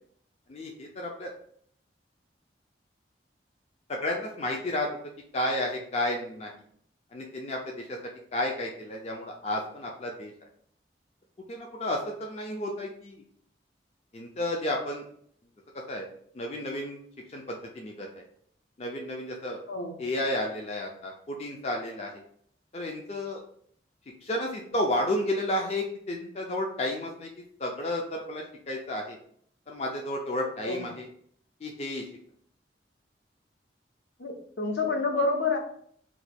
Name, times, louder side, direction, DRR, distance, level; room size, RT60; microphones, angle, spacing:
voice 1, 0.5-1.3 3.9-4.9 5.3-6.5 7.1-8.0 8.3-10.3 11.5-13.2 14.1-15.0 15.9-16.1 16.3-17.0 17.3-18.2 18.8-19.6 20.0-22.2 22.7-23.4 24.2-27.3 27.6-29.2 29.7-31.1 31.6-32.1, left 1 dB, 35° left, 1 dB, 0.4 m, -32 dB
voice 2, 34.2-35.6, left 3 dB, 70° left, 2 dB, 0.7 m, -28 dB
2.9 x 2.2 x 4.1 m, 0.63 s
head